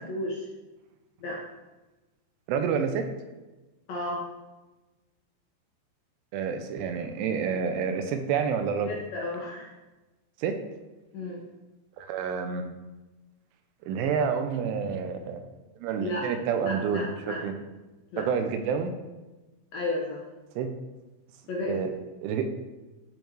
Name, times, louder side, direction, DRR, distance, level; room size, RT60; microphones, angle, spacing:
voice 1, 0.1-0.5 1.2-1.4 3.9-4.2 8.9-9.7 11.1-11.4 16.0-16.3 16.6-17.4 18.1-18.3 19.7-20.2 21.5-21.9, left 2 dB, 70° left, -4 dB, 2.4 m, -33 dB
voice 2, 2.5-3.1 6.3-8.9 10.4-10.6 12.0-12.7 13.9-15.4 15.8-17.5 18.2-18.9 20.6-20.7 21.6-21.9 22.2-22.5, right 6 dB, 90° right, 6 dB, 3.1 m, -28 dB
13.0 x 4.6 x 3.1 m, 1.1 s
omnidirectional pair, 5.5 m